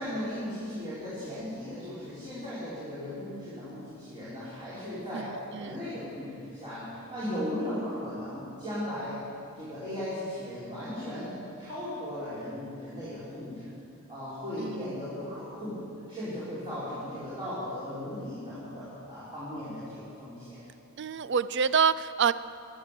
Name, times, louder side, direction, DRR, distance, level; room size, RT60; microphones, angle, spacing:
voice 1, 0.0-5.3 5.5-9.2 9.6-11.3 11.6-13.7 14.1-15.8 16.1-20.6, left 1 dB, 20° right, -12 dB, 4.8 m, -37 dB
voice 2, 5.1-5.8 14.6-15.1 21.0-22.3, right 6 dB, 55° right, 16 dB, 0.4 m, -27 dB
16.5 x 10.5 x 7.6 m, 2.6 s
head